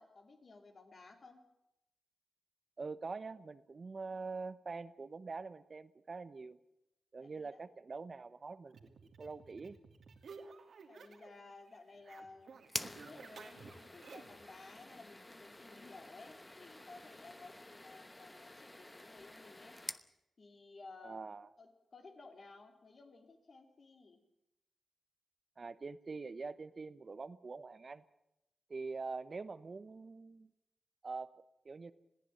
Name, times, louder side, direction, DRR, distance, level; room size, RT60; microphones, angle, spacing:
voice 1, 0.0-1.4 7.2-7.6 10.9-19.8 20.4-21.2 21.6-24.2, left 3 dB, 55° left, 4 dB, 4.0 m, -56 dB
voice 2, 2.8-6.6 7.1-9.8 21.0-21.5 25.6-28.0 28.7-30.5 31.0-31.3 31.6-31.9, right 4 dB, 45° right, 14 dB, 1.0 m, -44 dB
sound 1, 8.7-11.4 11.7-14.4, right 4 dB, 75° right, 2.9 m, -55 dB
sound 2, 12.7-20.1, left 1 dB, 20° left, 1.0 m, -48 dB
21.0 x 15.0 x 9.1 m, 0.87 s
cardioid pair, 70°, 0 cm